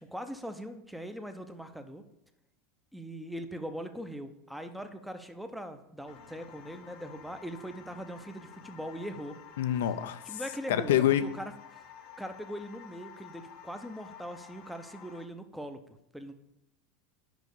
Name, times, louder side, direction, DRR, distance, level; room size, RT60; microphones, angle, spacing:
voice 1, 0.0-2.0 2.9-9.4 10.3-11.8 12.2-16.3, equal, ahead, 8 dB, 0.8 m, -41 dB
sound 1, 6.1-15.3, left 8 dB, 60° left, 1.0 m, -51 dB
voice 2, 9.6-10.4 10.7-11.2, left 11 dB, 80° left, 12 dB, 0.6 m, -26 dB
6.2 x 5.2 x 6.8 m, 0.84 s
supercardioid pair, 115°, 0 cm